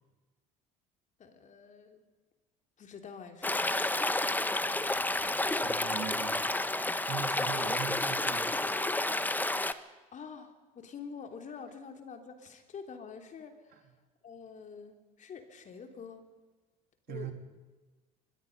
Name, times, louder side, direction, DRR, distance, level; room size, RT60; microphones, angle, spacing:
voice 1, 1.2-2.0 2.8-4.1 10.1-13.9 14.2-16.3 17.1-17.3, left 6 dB, 40° left, 5 dB, 3.2 m, -47 dB
Stream, 3.4-9.7, left 2 dB, 10° left, 1.3 m, -30 dB
voice 2, 5.6-6.5 7.0-8.5 17.1-17.3, right 8 dB, 55° right, 5 dB, 3.5 m, -40 dB
24.5 x 21.5 x 5.3 m, 1.3 s
hypercardioid pair, 70°, 19 cm